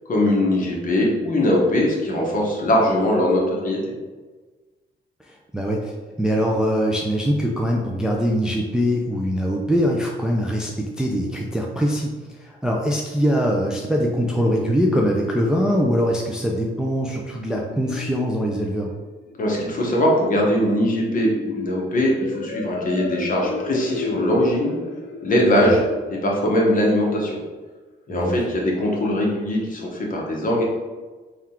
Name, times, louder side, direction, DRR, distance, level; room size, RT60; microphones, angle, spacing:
voice 1, 0.1-3.8 19.4-24.8 25.2-25.8 26.2-27.4 28.1-30.6, left 1 dB, 40° left, -2 dB, 1.0 m, -21 dB
voice 2, 5.3-18.9 25.5-25.8 28.1-28.5, equal, 5° right, -1 dB, 0.4 m, -23 dB
sound 1, 13.5-27.1, left 3 dB, 60° left, 0.6 m, -35 dB
3.6 x 2.4 x 4.3 m, 1.3 s
cardioid pair, 115°, 20 cm